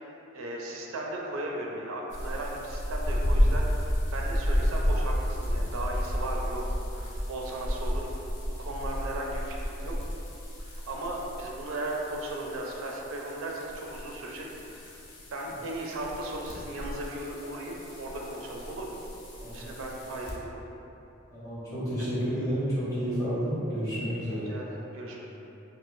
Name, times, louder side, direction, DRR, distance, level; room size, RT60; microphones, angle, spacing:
voice 1, 0.3-8.1 8.6-9.9 10.6-15.0 15.3-19.0 19.5-20.8 24.4-25.4, right 1 dB, 85° right, -1 dB, 0.4 m, -36 dB
sound 1, 2.1-20.3, equal, 55° left, 0.5 m, -32 dB
voice 2, 21.3-24.5, equal, 15° left, -12 dB, 1.0 m, -30 dB
4.4 x 2.0 x 2.5 m, 3.0 s
head